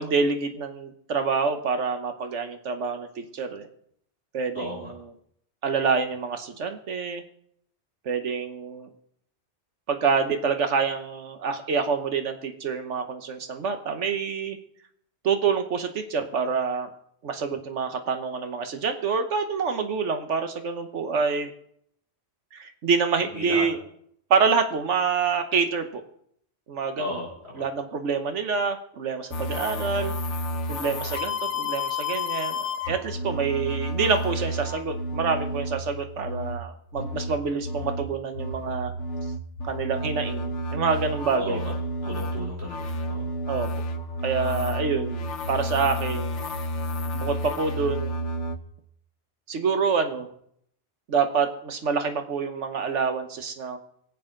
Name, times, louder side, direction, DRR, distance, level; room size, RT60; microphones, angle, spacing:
voice 1, 0.0-3.7 4.3-5.1 5.6-7.2 8.0-8.9 9.9-14.6 15.2-16.9 17.2-21.5 22.5-23.8 24.3-26.0 26.7-27.2 27.6-38.9 39.6-41.8 43.5-43.7 44.2-46.5 47.1-48.1 49.5-50.3 51.1-53.8, right 5 dB, 80° right, 7 dB, 1.3 m, -27 dB
voice 2, 4.5-4.9 23.3-23.6 27.0-27.3 27.5-27.6 41.4-41.7 42.0-43.3, left 2 dB, 65° right, -2 dB, 4.0 m, -34 dB
sound 1, 29.3-48.6, left 1 dB, 90° left, 1.2 m, -31 dB
25.0 x 8.3 x 3.8 m, 0.70 s
omnidirectional pair, 1.2 m